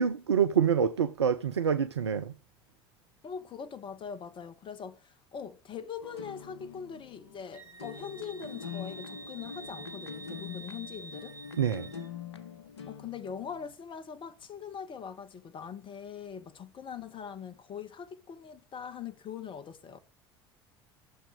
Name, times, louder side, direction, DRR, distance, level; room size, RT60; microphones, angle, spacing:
voice 1, 0.0-2.3 11.6-11.9, right 7 dB, 80° right, 0.6 m, -26 dB
voice 2, 3.2-11.3 12.9-20.0, left 7 dB, 40° left, 1.4 m, -42 dB
sound 1, 6.0-13.7, left 7 dB, 80° left, 1.1 m, -44 dB
Wind instrument woodwind instrument, 7.5-12.1, right 3 dB, 20° right, 5.2 m, -47 dB
14.0 x 7.3 x 6.4 m
figure-of-eight pair, 65°, 14 cm